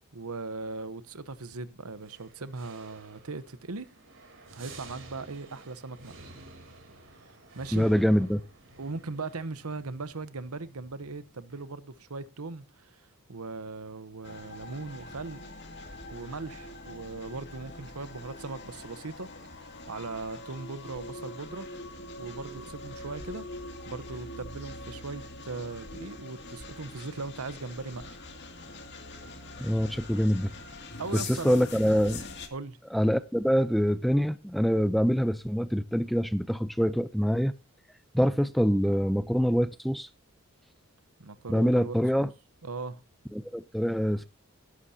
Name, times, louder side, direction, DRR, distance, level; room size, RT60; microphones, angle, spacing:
voice 1, 0.1-3.9 4.6-6.1 7.5-7.9 8.8-15.4 16.1-21.7 22.2-23.4 23.9-28.2 31.0-31.7 32.5-32.8 41.2-42.3 42.6-43.0, right 3 dB, 85° right, 1.0 m, -39 dB
sound 1, 1.9-11.6, right 2 dB, 60° right, 3.4 m, -52 dB
voice 2, 7.7-8.4 29.6-30.5 31.1-32.2 32.9-37.5 38.1-40.1 41.5-42.3 43.3-44.3, equal, ahead, 0.6 m, -25 dB
sound 2, 14.2-32.5, left 2 dB, 50° left, 2.6 m, -43 dB
18.0 x 11.5 x 2.8 m
head